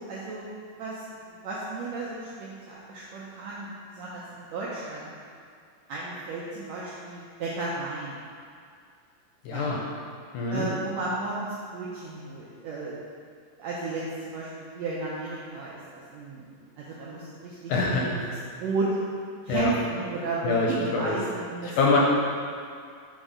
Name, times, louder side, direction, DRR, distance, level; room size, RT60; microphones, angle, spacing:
voice 1, 0.0-5.1 5.9-8.2 9.5-9.7 10.5-13.0 13.6-18.2 18.6-18.9 19.4-22.0, right 3 dB, 80° right, -6 dB, 1.5 m, -34 dB
voice 2, 9.5-9.8 10.3-10.7 17.7-18.3 19.5-19.7 20.4-21.2 21.8-22.0, left 3 dB, 80° left, -3 dB, 1.9 m, -25 dB
6.3 x 3.3 x 4.9 m, 2.3 s
omnidirectional pair, 3.9 m